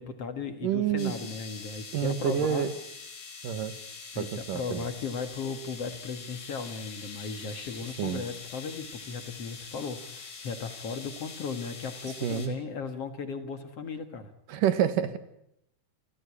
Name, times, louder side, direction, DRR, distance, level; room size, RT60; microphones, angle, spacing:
voice 1, 0.0-2.7 4.1-14.3, left 5 dB, 50° left, 8 dB, 2.3 m, -36 dB
voice 2, 0.6-1.1 1.9-2.7 3.4-3.8 4.2-4.8 8.0-8.2 12.2-12.6 14.5-15.2, right 9 dB, 75° right, 12 dB, 3.0 m, -28 dB
sound 1, 1.0-12.5, left 5 dB, 70° left, 5.6 m, -44 dB
28.0 x 16.5 x 9.8 m, 0.80 s
omnidirectional pair, 3.9 m